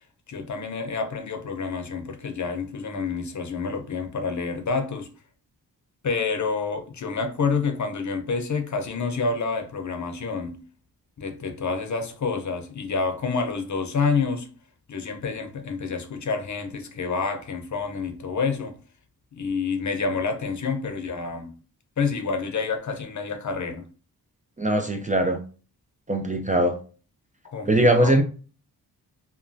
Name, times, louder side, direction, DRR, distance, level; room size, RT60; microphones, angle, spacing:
voice 1, 0.3-5.1 6.0-10.6 11.2-14.5 14.9-18.7 19.3-21.5 22.0-23.9 27.4-28.1, left 4 dB, 45° left, 0.7 m, -28 dB
voice 2, 24.6-25.4 26.1-26.8 27.7-28.2, right 1 dB, 20° right, 0.4 m, -20 dB
2.9 x 2.2 x 2.6 m
cardioid pair, 55°, 40 cm